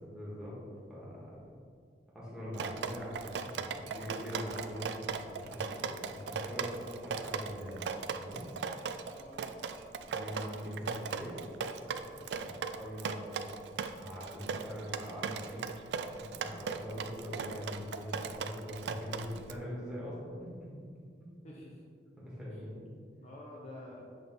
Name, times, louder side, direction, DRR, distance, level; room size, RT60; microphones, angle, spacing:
voice 1, 0.0-0.6 0.9-1.4 2.1-8.5 10.0-11.3 11.7-13.5 14.0-15.6 16.1-20.7 22.2-22.8, equal, 5° right, -8 dB, 1.6 m, -43 dB
Drip, 2.5-19.6, right 6 dB, 75° right, 0.3 m, -38 dB
voice 2, 9.0-9.8 21.4-21.8 22.5-22.6 23.2-24.1, left 1 dB, 40° left, -4 dB, 0.7 m, -49 dB
7.8 x 3.6 x 3.8 m, 2.2 s
head